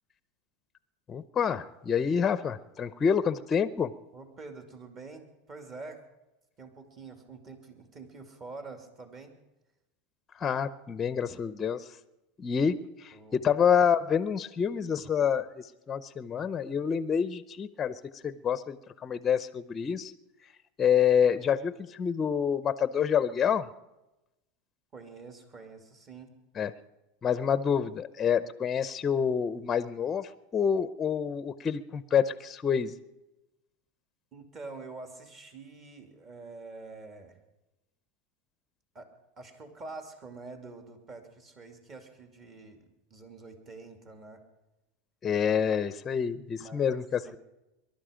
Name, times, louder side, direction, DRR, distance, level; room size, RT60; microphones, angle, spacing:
voice 1, 1.1-3.9 10.4-11.8 12.4-20.1 20.8-23.7 26.6-26.7 27.2-32.9 45.2-47.2, left 7 dB, 25° left, 14 dB, 0.6 m, -27 dB
voice 2, 4.1-6.0 6.6-9.3 13.1-13.4 24.9-26.3 34.3-37.4 38.9-39.1 39.4-44.4 46.6-47.4, right 3 dB, 30° right, 5 dB, 2.5 m, -46 dB
22.5 x 12.0 x 5.1 m, 0.98 s
supercardioid pair, 130°, 0 cm